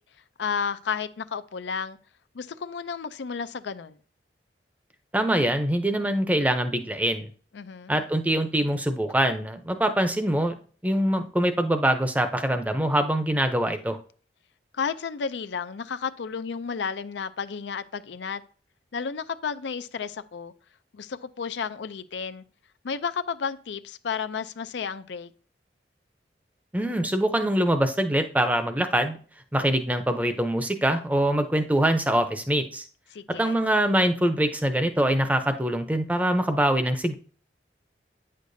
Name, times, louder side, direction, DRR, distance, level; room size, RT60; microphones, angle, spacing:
voice 1, 0.4-2.0 2.3-4.0 7.5-8.0 14.7-18.4 18.9-20.5 20.9-22.4 22.8-25.3 33.1-33.6, left 6 dB, 85° left, 0.5 m, -32 dB
voice 2, 5.1-7.3 7.9-10.5 10.8-14.0 26.7-29.2 29.5-32.9 33.4-37.2, right 1 dB, 10° right, 0.6 m, -24 dB
9.2 x 6.5 x 2.7 m
head